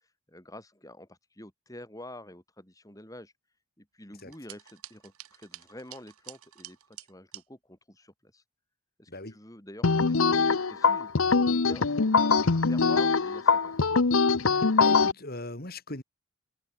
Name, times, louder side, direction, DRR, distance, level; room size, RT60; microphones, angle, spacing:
voice 1, 0.3-3.3 3.8-6.8 7.1-8.4 9.0-11.9 12.2-13.7, left 1 dB, 15° left, 4.3 m, -47 dB
sound 1, 4.2-7.4, right 13 dB, 85° right, 2.8 m, -48 dB
voice 2, 9.1-9.4 14.8-16.0, left 2 dB, 45° left, 3.1 m, -39 dB
sound 2, 9.8-15.1, left 4 dB, 70° left, 0.9 m, -23 dB
head